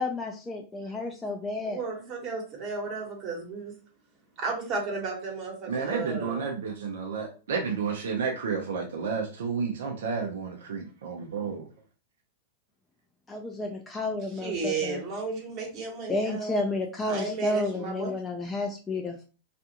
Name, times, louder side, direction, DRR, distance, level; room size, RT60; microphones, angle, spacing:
voice 1, 0.0-1.8 13.3-15.0 16.1-19.3, left 2 dB, 15° left, 1 dB, 0.4 m, -31 dB
voice 2, 1.7-3.7 4.4-6.5 14.4-16.6 17.1-18.1, right 3 dB, 45° right, 0 dB, 1.1 m, -33 dB
voice 3, 5.7-11.6, right 5 dB, 80° right, 1 dB, 0.6 m, -31 dB
2.5 x 2.3 x 2.8 m, 0.36 s
hypercardioid pair, 110°, 0 cm